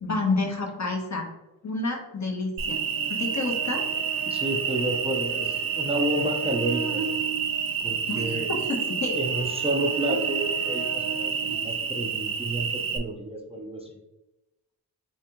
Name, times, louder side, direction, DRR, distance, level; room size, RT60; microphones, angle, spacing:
voice 1, 0.0-1.2 1.6-2.8 3.1-3.8 8.1-9.1, left 3 dB, 45° left, 1 dB, 1.0 m, -29 dB
Cricket, 2.6-13.0, right 6 dB, 60° right, 0.5 m, -28 dB
voice 2, 4.3-7.0 7.8-8.5 9.2-14.0, right 1 dB, 15° right, 1 dB, 0.5 m, -30 dB
3.4 x 3.3 x 2.9 m, 0.97 s
wide cardioid pair, 65°, 40 cm